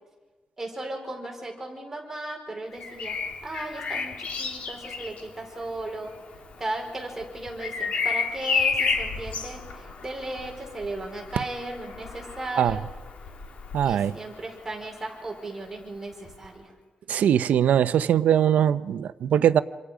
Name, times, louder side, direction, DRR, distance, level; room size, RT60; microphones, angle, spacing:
voice 1, 0.6-3.2 3.4-6.1 6.6-12.9 13.8-16.7, right 2 dB, 15° right, 4.7 m, -36 dB
Bird vocalization bird call bird song, 2.7-14.5 16.2-16.5, left 5 dB, 60° left, 3.0 m, -32 dB
voice 2, 13.7-14.1 17.1-19.6, right 9 dB, 80° right, 0.7 m, -21 dB
27.5 x 26.5 x 5.1 m
wide cardioid pair, 165°, 3 cm